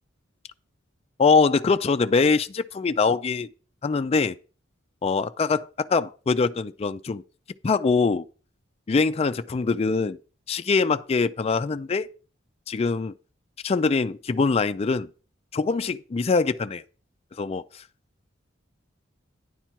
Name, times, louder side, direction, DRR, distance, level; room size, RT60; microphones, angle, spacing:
voice 1, 1.2-3.5 3.8-4.3 5.0-7.2 7.6-8.2 8.9-10.2 10.5-12.1 12.7-13.1 13.6-15.1 15.5-16.8 17.4-17.8, left 4 dB, 30° left, 0.4 m, -23 dB
10.0 x 4.4 x 5.7 m
head